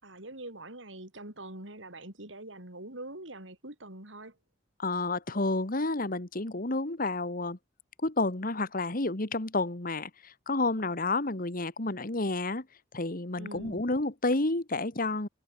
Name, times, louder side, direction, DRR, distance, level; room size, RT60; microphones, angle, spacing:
voice 1, 0.0-4.4 13.4-13.9, right 1 dB, 75° right, 6.3 m, -44 dB
voice 2, 4.8-7.6 8.0-12.7 12.9-15.3, left 2 dB, 50° left, 1.9 m, -30 dB
head